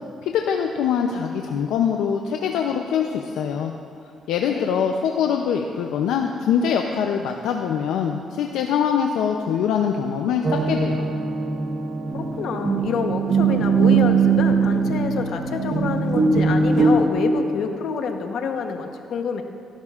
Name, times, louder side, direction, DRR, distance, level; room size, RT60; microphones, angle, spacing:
voice 1, 0.2-3.7 4.3-11.0, left 7 dB, 90° left, 3 dB, 0.5 m, -23 dB
sound 1, 10.4-17.1, right 4 dB, 45° right, 1.1 m, -21 dB
voice 2, 12.1-19.4, left 5 dB, 75° left, 5 dB, 0.9 m, -27 dB
16.5 x 11.5 x 2.5 m, 2.7 s
cardioid pair, 90°, 0 cm